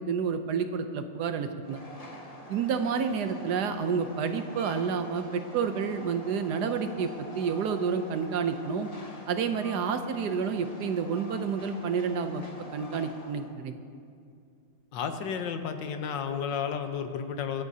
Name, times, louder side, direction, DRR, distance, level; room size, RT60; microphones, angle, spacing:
voice 1, 0.1-1.8 2.5-8.9 9.3-12.4 12.7-13.7, right 6 dB, 70° right, 8 dB, 1.2 m, -29 dB
Train, 1.6-13.5, left 1 dB, 25° left, 1.2 m, -46 dB
voice 2, 14.9-17.6, left 7 dB, 90° left, 7 dB, 1.6 m, -32 dB
25.0 x 11.0 x 2.8 m, 2.4 s
omnidirectional pair, 1.9 m